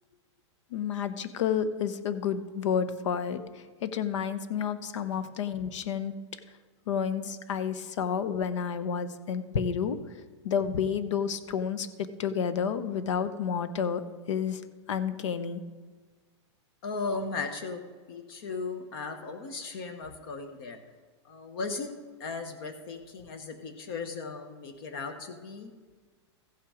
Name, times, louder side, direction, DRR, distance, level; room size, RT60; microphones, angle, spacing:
voice 1, 0.7-3.4 3.8-6.1 6.9-10.0 10.4-11.9 12.2-14.0 14.3-14.6 14.9-15.6, left 7 dB, 80° left, 12 dB, 0.8 m, -30 dB
voice 2, 16.8-17.8 18.1-20.8 21.2-21.9 22.2-25.7, left 4 dB, 55° left, 7 dB, 0.9 m, -36 dB
15.0 x 5.8 x 4.9 m, 1.4 s
supercardioid pair, 165°, 15 cm